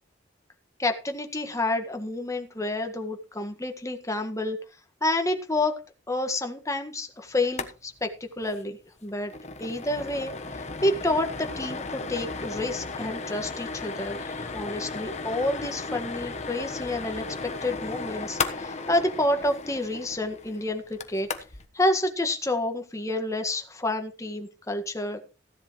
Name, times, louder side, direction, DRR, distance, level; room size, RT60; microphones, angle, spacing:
voice 1, 0.8-4.6 5.0-5.8 6.1-9.3 9.6-17.3 17.6-21.3 21.7-25.2, left 1 dB, 15° left, 5 dB, 1.7 m, -29 dB
sound 1, 7.4-7.7 8.0-8.1 8.4-8.6 9.0-21.7, left 4 dB, 40° left, 1.2 m, -35 dB
15.5 x 11.0 x 3.1 m, 0.31 s
head